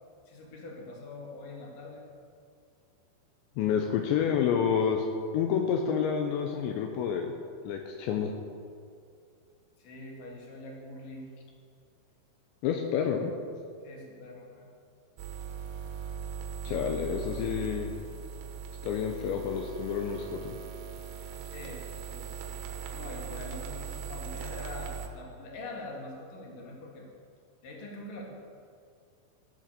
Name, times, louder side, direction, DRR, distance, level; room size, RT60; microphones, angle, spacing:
voice 1, 0.3-2.1 9.8-11.3 13.8-14.7 16.6-17.2 17.4-17.7 21.5-22.6 22.9-27.1 27.6-28.3, left 2 dB, 55° left, -1 dB, 3.4 m, -44 dB
voice 2, 3.6-5.1 5.3-7.3 7.6-8.3 12.6-13.3 16.6-17.9 18.8-20.6, left 7 dB, 80° left, 3 dB, 3.0 m, -29 dB
sound 1, 15.2-25.1, right 7 dB, 70° right, 2.8 m, -39 dB
14.5 x 8.7 x 6.8 m, 2.3 s
omnidirectional pair, 5.3 m